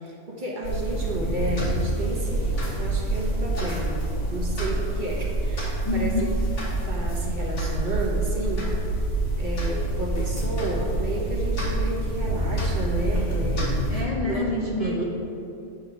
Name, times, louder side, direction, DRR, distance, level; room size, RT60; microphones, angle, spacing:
voice 1, 0.0-2.5 2.8-6.3 6.9-8.7 9.4-13.7 14.2-14.4 14.8-15.0, right 1 dB, 40° right, -3 dB, 1.3 m, -31 dB
sound 1, 0.6-14.0, right 2 dB, 75° left, 2.2 m, -27 dB
voice 2, 5.8-6.3 13.9-15.0, left 2 dB, 35° left, -3 dB, 0.7 m, -27 dB
9.6 x 3.6 x 6.0 m, 2.7 s
omnidirectional pair, 1.3 m